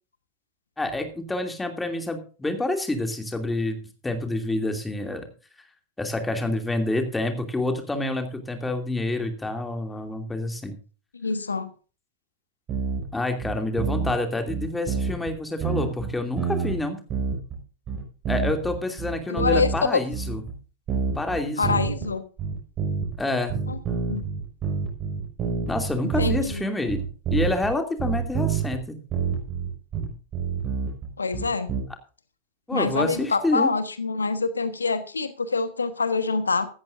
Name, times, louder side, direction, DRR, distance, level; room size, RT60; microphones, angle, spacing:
voice 1, 0.8-5.3 6.0-10.8 13.1-17.0 18.3-20.4 21.1-21.8 23.2-23.6 25.7-27.0 27.3-29.0 32.7-33.7, left 2 dB, 10° left, 5 dB, 2.7 m, -28 dB
voice 2, 11.2-11.7 19.3-19.7 21.6-22.2 24.1-24.2 26.2-26.6 31.2-31.7 32.7-36.7, left 4 dB, 75° left, 12 dB, 1.2 m, -25 dB
sound 1, 12.7-13.1 13.4-14.2 14.5-15.3 15.6-16.8 17.1-17.6 17.9-19.8 20.1-20.5 20.9-22.1 22.4-23.2 23.5-26.6 26.9-27.7 28.0-28.8 29.1-31.8, right 6 dB, 30° right, 5.9 m, -27 dB
15.5 x 13.5 x 2.6 m, 0.36 s
figure-of-eight pair, 90°, 0 cm